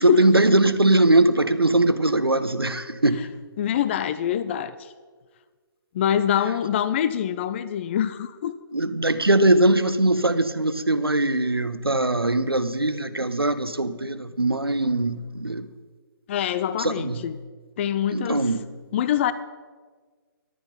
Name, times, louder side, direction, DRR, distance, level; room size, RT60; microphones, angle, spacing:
voice 1, 0.0-3.3 8.7-15.7 16.8-17.3 18.1-18.7, right 2 dB, 90° right, 12 dB, 0.9 m, -21 dB
voice 2, 3.6-4.9 5.9-8.6 16.3-17.3 17.8-18.4 18.9-19.3, left 9 dB, 30° left, 14 dB, 0.5 m, -25 dB
14.0 x 11.0 x 5.3 m, 1.5 s
figure-of-eight pair, 135°, 12 cm